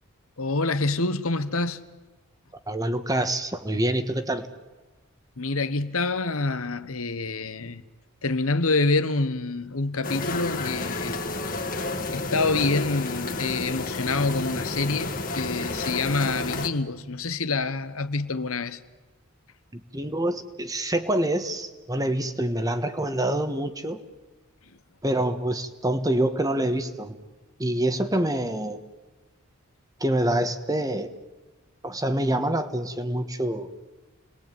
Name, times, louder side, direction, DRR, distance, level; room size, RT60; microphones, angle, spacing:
voice 1, 0.4-1.8 5.4-7.8 8.2-11.2 12.1-18.8, left 3 dB, 70° left, 1.3 m, -26 dB
voice 2, 2.7-4.5 19.7-24.0 25.0-27.2 27.6-28.8 30.0-31.1 31.8-33.7, right 1 dB, 15° right, 1.4 m, -26 dB
sound 1, 10.0-16.7, left 2 dB, 40° left, 2.2 m, -31 dB
30.0 x 20.5 x 9.3 m
head